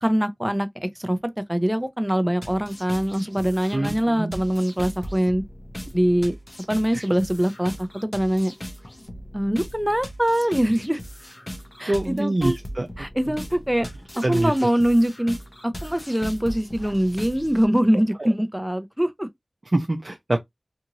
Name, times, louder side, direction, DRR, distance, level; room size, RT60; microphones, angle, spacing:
voice 1, 0.0-1.2 1.5-5.4 5.9-6.4 6.7-8.5 9.3-11.0 11.8-12.6 13.0-13.9 14.1-15.4 15.6-19.3, equal, 10° right, 0.6 m, -23 dB
sound 1, 2.4-17.7, equal, 30° left, 0.8 m, -38 dB
voice 2, 3.7-4.4 6.9-7.0 11.9-13.1 14.2-14.7 18.2-18.3 19.7-20.4, right 1 dB, 50° right, 0.5 m, -25 dB
2.6 x 2.5 x 2.9 m
wide cardioid pair, 45°, 0 cm